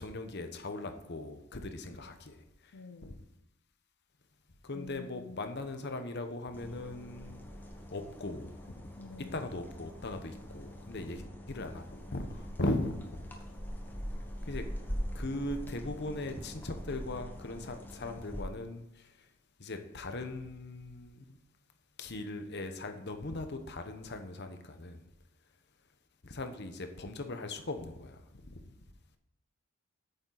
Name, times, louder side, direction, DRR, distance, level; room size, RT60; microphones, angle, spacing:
voice 1, 0.0-2.7 3.0-3.1 4.6-7.4 7.9-8.6 9.3-13.2 14.5-14.6 15.1-19.1 19.6-21.4 22.0-25.0 26.2-28.6, left 2 dB, 50° left, 7 dB, 1.0 m, -39 dB
voice 2, 2.7-3.2 4.7-5.5 9.0-9.4, left 3 dB, 75° left, 7 dB, 0.6 m, -48 dB
sound 1, 6.5-18.4, equal, 10° left, 1.1 m, -43 dB
8.9 x 6.9 x 4.0 m, 0.85 s
head